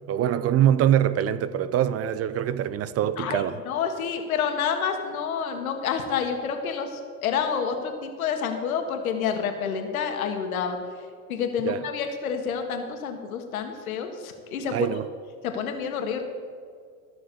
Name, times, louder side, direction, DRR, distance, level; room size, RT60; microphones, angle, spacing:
voice 1, 0.0-3.6 11.6-11.8 14.7-15.1, right 10 dB, 35° right, 0.6 m, -24 dB
voice 2, 3.2-10.8 11.3-14.9 15.4-16.2, left 7 dB, 90° left, 1.7 m, -28 dB
14.5 x 6.4 x 6.9 m
hypercardioid pair, 95°, 41 cm